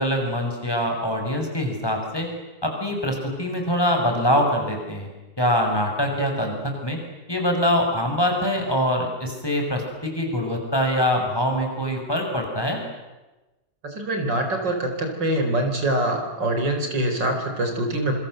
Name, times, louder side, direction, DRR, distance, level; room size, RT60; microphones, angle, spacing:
voice 1, 0.0-2.3 2.6-5.1 5.4-7.0 7.3-12.8, equal, 10° left, 2 dB, 6.2 m, -24 dB
voice 2, 13.8-18.1, right 1 dB, 85° right, 5 dB, 5.1 m, -24 dB
27.0 x 26.0 x 7.8 m, 1.1 s
omnidirectional pair, 1.9 m